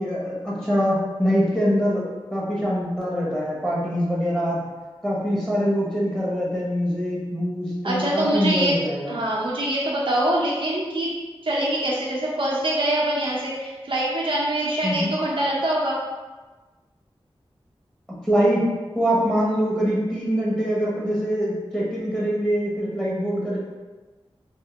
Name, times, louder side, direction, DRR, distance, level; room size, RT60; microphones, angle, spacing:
voice 1, 0.0-2.0 2.3-4.6 5.0-9.1 14.8-15.1 18.2-18.6 18.9-23.6, equal, 5° left, -6 dB, 1.3 m, -23 dB
voice 2, 7.8-8.7 9.1-11.1 11.4-16.0, right 1 dB, 55° right, -6 dB, 0.8 m, -24 dB
3.6 x 2.1 x 3.4 m, 1.3 s
cardioid pair, 45°, 10 cm